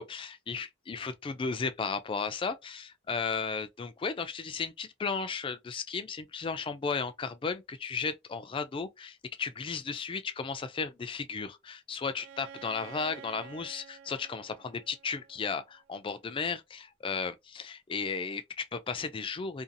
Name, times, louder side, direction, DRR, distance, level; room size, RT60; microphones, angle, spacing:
voice 1, 0.0-19.6, left 5 dB, 25° left, 0.3 m, -35 dB
Bowed string instrument, 12.1-15.9, right 8 dB, 75° right, 0.3 m, -50 dB
2.5 x 2.3 x 2.6 m
head